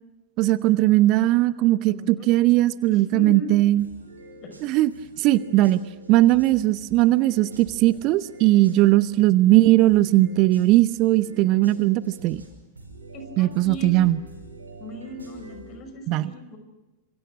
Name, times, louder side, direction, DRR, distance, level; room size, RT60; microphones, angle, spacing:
voice 1, 0.4-3.8 4.6-4.9 5.2-5.8 6.1-12.4 13.4-14.2 16.1-16.2, right 16 dB, 40° right, 16 dB, 0.8 m, -19 dB
voice 2, 1.8-3.5 4.4-4.6 13.1-14.1 14.8-16.6, left 1 dB, 35° left, 8 dB, 6.0 m, -38 dB
sound 1, 3.8-9.1 9.8-15.8, right 1 dB, 75° right, 5.5 m, -45 dB
27.0 x 26.5 x 6.1 m, 1.0 s
figure-of-eight pair, 90°, 0 cm